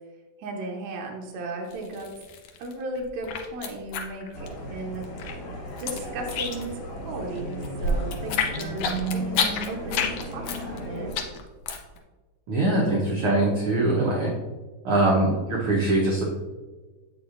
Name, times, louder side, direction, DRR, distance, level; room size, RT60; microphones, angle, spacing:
voice 1, 0.4-2.1 2.6-5.1 5.8-8.8 9.1-11.1, right 2 dB, 70° right, 1 dB, 1.8 m, -35 dB
sound 1, 1.7-2.7 3.0-4.8 5.0-6.9 7.2-12.0, left 4 dB, 90° left, 1.4 m, -29 dB
sound 2, 4.3-11.2, right 1 dB, 70° left, 2.9 m, -35 dB
voice 2, 12.5-14.3 14.8-16.2, right 2 dB, 90° right, -3 dB, 1.2 m, -22 dB
7.9 x 6.0 x 2.5 m, 1.3 s
omnidirectional pair, 3.9 m